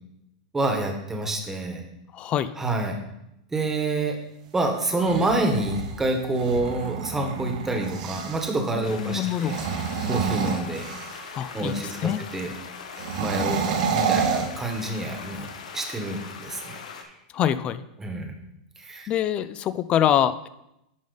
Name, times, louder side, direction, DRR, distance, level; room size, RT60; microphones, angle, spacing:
voice 1, 0.5-1.8 2.6-3.0 3.5-4.2 4.5-9.6 10.0-10.9 11.5-12.5 13.2-15.5 15.7-16.7 18.0-18.3 18.8-19.1, right 2 dB, 10° right, 4 dB, 1.3 m, -27 dB
voice 2, 2.1-2.5 8.7-9.5 11.3-12.2 17.3-17.8 19.1-20.5, left 10 dB, 30° left, 14 dB, 0.4 m, -25 dB
sound 1, 4.8-8.6 9.3-11.4 12.9-15.2, right 6 dB, 75° right, 1.2 m, -29 dB
sound 2, 8.8-17.0, left 6 dB, 90° left, 1.2 m, -41 dB
10.0 x 5.3 x 4.0 m, 0.85 s
supercardioid pair, 140°, 4 cm